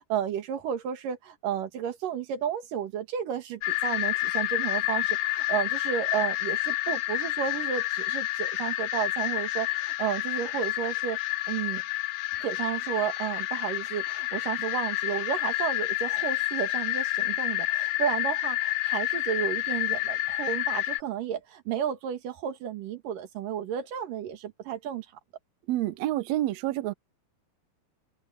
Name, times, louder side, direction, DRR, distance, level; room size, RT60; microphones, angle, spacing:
voice 1, 0.0-11.2 11.5-11.8 12.4-25.1, right 9 dB, 65° right, 3.3 m, -32 dB
sound 1, 3.6-21.0, left 17 dB, 75° left, 2.2 m, -29 dB
voice 2, 25.7-26.9, right 14 dB, 85° right, 1.5 m, -28 dB
open air
omnidirectional pair, 4.2 m